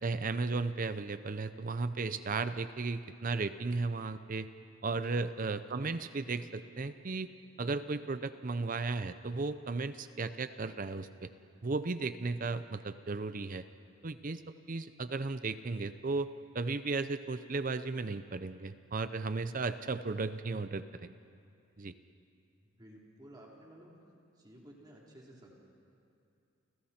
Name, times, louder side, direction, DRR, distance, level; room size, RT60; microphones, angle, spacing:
voice 1, 0.0-4.5 4.8-7.3 7.6-11.3 11.6-13.6 14.0-14.4 14.7-16.3 16.5-21.1 21.8-21.9, right 3 dB, 40° right, 11 dB, 0.6 m, -35 dB
voice 2, 22.8-23.9 24.3-25.5, right 1 dB, 20° right, -3 dB, 3.5 m, -54 dB
30.0 x 29.5 x 4.4 m, 2.5 s
head